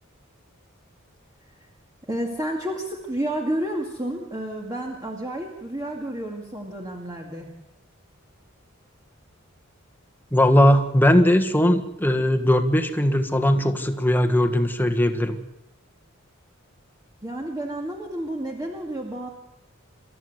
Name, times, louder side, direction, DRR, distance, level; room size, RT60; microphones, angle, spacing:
voice 1, 2.1-7.5 17.2-19.3, right 1 dB, 20° right, 0 dB, 2.3 m, -30 dB
voice 2, 10.3-15.4, left 1 dB, 10° left, 6 dB, 1.6 m, -19 dB
28.0 x 13.5 x 8.0 m, 0.97 s
head